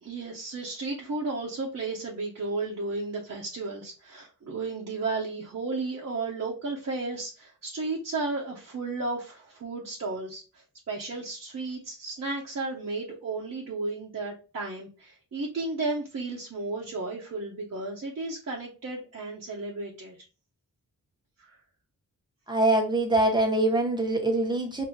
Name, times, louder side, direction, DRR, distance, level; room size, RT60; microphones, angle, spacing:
voice 1, 0.0-10.4 10.9-20.2 21.4-21.6, right 3 dB, 50° right, -4 dB, 0.9 m, -33 dB
voice 2, 22.5-24.9, right 2 dB, 15° right, 2 dB, 1.0 m, -24 dB
5.5 x 2.7 x 2.3 m, 0.33 s
wide cardioid pair, 160°, 33 cm